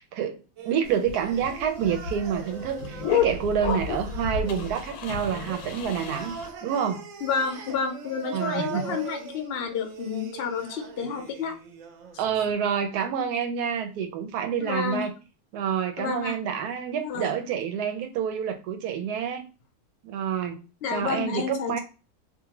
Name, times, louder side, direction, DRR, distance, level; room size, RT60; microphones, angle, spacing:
voice 1, 0.0-6.4 6.6-7.0 8.3-9.0 12.2-15.1 15.5-19.4 20.0-20.6 20.9-21.8, right 8 dB, 90° right, 7 dB, 1.1 m, -28 dB
sound 1, 0.6-12.5, right 7 dB, 70° right, 0.9 m, -41 dB
sound 2, 0.9-6.5, left 7 dB, 90° left, 1.1 m, -31 dB
voice 2, 7.2-11.5 14.6-15.1 16.0-16.4 17.0-17.3 20.8-21.8, left 6 dB, 65° left, 4 dB, 0.6 m, -30 dB
2.6 x 2.5 x 2.8 m, 0.33 s
omnidirectional pair, 1.6 m